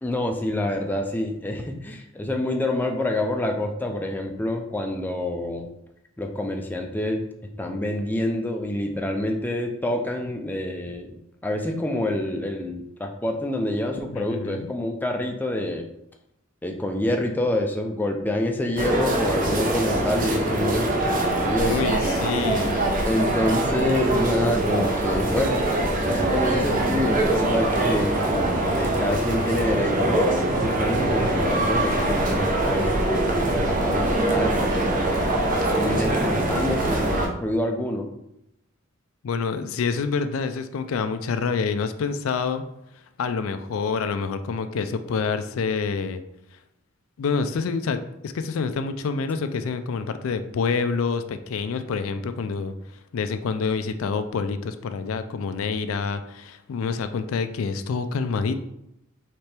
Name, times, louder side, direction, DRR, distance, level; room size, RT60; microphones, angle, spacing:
voice 1, 0.0-5.7 6.2-7.2 7.6-11.2 11.4-15.8 16.6-21.9 23.1-25.6 26.0-28.1 28.7-34.9 35.7-38.1, left 1 dB, 10° left, 3 dB, 0.4 m, -27 dB
voice 2, 14.1-14.7 21.7-22.8 39.2-42.6 43.2-46.2 47.2-52.7 53.1-58.6, left 5 dB, 85° left, 9 dB, 0.4 m, -27 dB
sound 1, 18.8-37.3, right 1 dB, 40° right, 0.7 m, -23 dB
4.3 x 3.3 x 3.3 m, 0.82 s
head